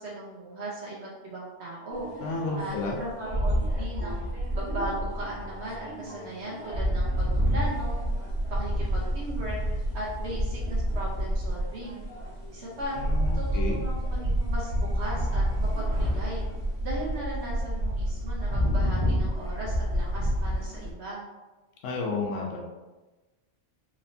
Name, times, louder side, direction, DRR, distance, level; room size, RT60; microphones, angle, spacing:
voice 1, 0.0-4.2 4.5-8.0 8.5-12.0 12.5-13.0 13.3-16.4 16.8-21.2, right 1 dB, 65° right, -5 dB, 1.2 m, -37 dB
sound 1, 1.9-20.9, equal, 25° right, 1.1 m, -29 dB
voice 2, 2.2-3.0 12.9-13.8 21.8-22.6, left 3 dB, 90° left, -1 dB, 1.0 m, -31 dB
4.4 x 3.1 x 2.7 m, 1.2 s
omnidirectional pair, 1.2 m